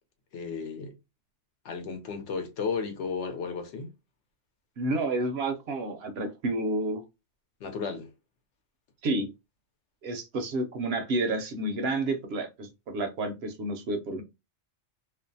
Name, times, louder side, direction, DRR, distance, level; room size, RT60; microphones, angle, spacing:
voice 1, 0.3-0.9 1.6-3.9 7.6-8.1, left 5 dB, 70° left, 0.9 m, -34 dB
voice 2, 4.8-7.0 9.0-9.3 10.0-14.2, right 2 dB, 65° right, 0.7 m, -30 dB
2.5 x 2.0 x 2.6 m
omnidirectional pair, 1.2 m